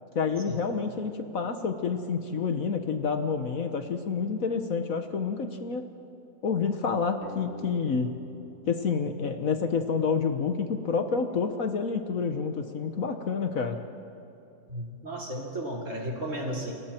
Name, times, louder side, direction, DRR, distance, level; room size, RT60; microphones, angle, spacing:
voice 1, 0.1-5.9 6.4-8.2 8.7-13.8, left 5 dB, 55° left, 7 dB, 1.4 m, -28 dB
sound 1, 7.2-10.4, left 2 dB, 35° left, 1.9 m, -48 dB
voice 2, 14.7-16.7, right 1 dB, 45° right, -2 dB, 3.8 m, -34 dB
30.0 x 24.0 x 4.5 m, 2.8 s
omnidirectional pair, 1.8 m